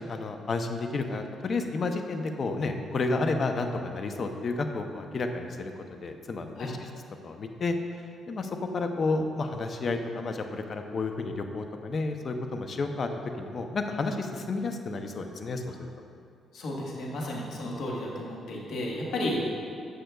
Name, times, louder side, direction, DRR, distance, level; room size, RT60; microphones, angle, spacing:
voice 1, 0.0-6.9 7.2-7.8 8.3-13.1 13.4-15.9, left 3 dB, 45° left, 6 dB, 0.6 m, -31 dB
voice 2, 16.5-19.5, left 1 dB, 70° left, -2 dB, 1.5 m, -33 dB
10.0 x 7.8 x 2.3 m, 2.4 s
cardioid pair, 90°, 0 cm